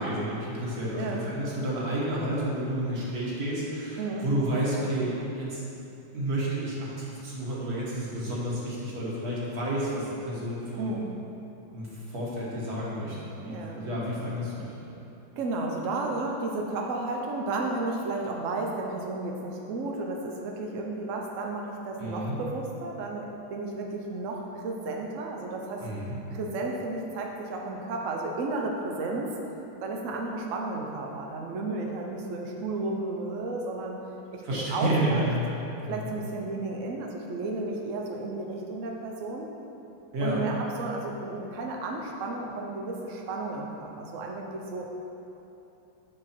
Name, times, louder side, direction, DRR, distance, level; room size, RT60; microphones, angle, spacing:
voice 1, 0.0-5.6 6.1-11.0 11.7-14.7 22.0-22.4 25.8-26.2 34.4-35.5 35.8-36.1 40.1-40.5, right 1 dB, 50° right, -6 dB, 1.8 m, -30 dB
voice 2, 4.0-4.3 10.8-11.1 13.5-13.8 15.4-25.8 26.3-29.3 29.8-34.0 34.3-35.2 35.9-39.5 40.2-44.9, right 2 dB, 85° right, 0 dB, 0.6 m, -33 dB
8.7 x 4.8 x 4.4 m, 2.9 s
omnidirectional pair, 2.3 m